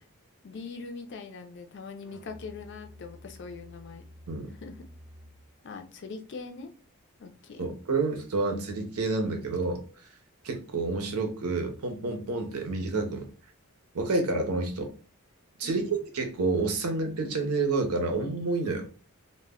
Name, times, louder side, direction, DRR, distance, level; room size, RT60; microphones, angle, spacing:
voice 1, 0.4-4.0 4.5-4.9 5.6-6.7 7.2-7.7 15.6-15.9, left 4 dB, 55° left, 6 dB, 0.4 m, -42 dB
Musical instrument, 2.0-5.6, left 1 dB, ahead, 0.5 m, -50 dB
voice 2, 7.6-9.8 10.4-13.3 13.9-14.9 15.6-18.9, right 3 dB, 90° right, 5 dB, 0.7 m, -29 dB
2.1 x 2.1 x 3.5 m, 0.39 s
head